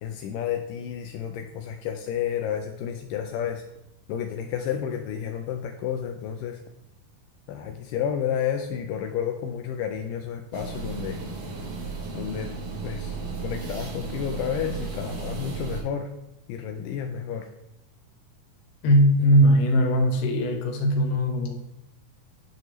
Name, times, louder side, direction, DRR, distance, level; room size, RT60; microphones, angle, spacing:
voice 1, 0.0-3.6 4.1-6.6 7.5-11.2 12.1-12.5 12.8-13.2 13.4-16.1 16.5-17.5 21.5-21.6, left 8 dB, 80° left, 4 dB, 2.1 m, -31 dB
sound 1, 10.5-15.8, right 4 dB, 85° right, 1.1 m, -34 dB
voice 2, 18.8-21.6, equal, 65° left, 2 dB, 1.9 m, -20 dB
9.5 x 4.6 x 3.0 m, 0.84 s
omnidirectional pair, 3.9 m